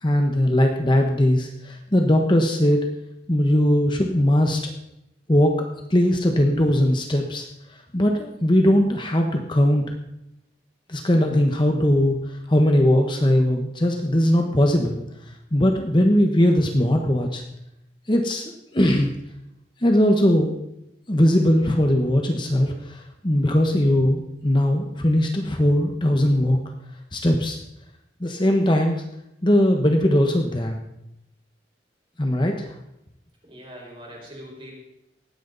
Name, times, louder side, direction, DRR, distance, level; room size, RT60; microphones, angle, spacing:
voice 1, 0.0-2.8 3.3-4.6 5.3-7.5 7.9-9.8 10.9-15.0 15.5-17.4 18.1-19.1 19.8-20.5 21.1-26.6 27.1-27.6 28.2-29.0 29.4-30.8 32.2-32.8, left 1 dB, 25° left, 3 dB, 1.2 m, -20 dB
voice 2, 33.4-34.7, equal, 30° right, -2 dB, 5.2 m, -41 dB
18.5 x 15.0 x 4.1 m, 0.87 s
head